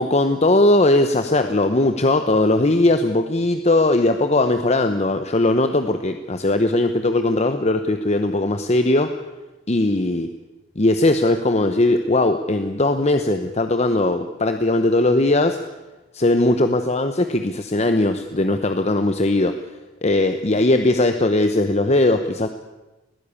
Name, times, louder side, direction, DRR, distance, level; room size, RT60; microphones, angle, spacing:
voice 1, 0.0-9.1 9.7-10.3 10.8-15.6 16.1-19.5 20.0-22.5, left 2 dB, 35° left, 8 dB, 0.9 m, -19 dB
20.0 x 16.0 x 8.5 m, 1.1 s
head